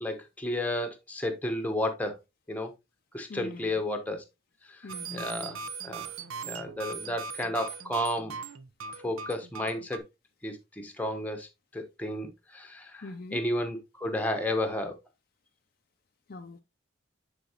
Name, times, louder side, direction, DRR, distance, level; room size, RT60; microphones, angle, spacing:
voice 1, 0.0-2.2 2.5-2.7 3.1-4.2 4.7-4.8 5.1-6.1 6.4-8.4 9.0-10.0 10.4-11.5 11.7-13.0 13.3-14.9, left 1 dB, 5° left, 1.0 m, -32 dB
voice 2, 3.3-3.7 4.8-5.6 13.0-13.4 16.3-16.6, left 3 dB, 45° left, 0.5 m, -43 dB
sound 1, 4.9-10.0, right 5 dB, 80° right, 0.7 m, -40 dB
10.0 x 4.0 x 2.8 m
head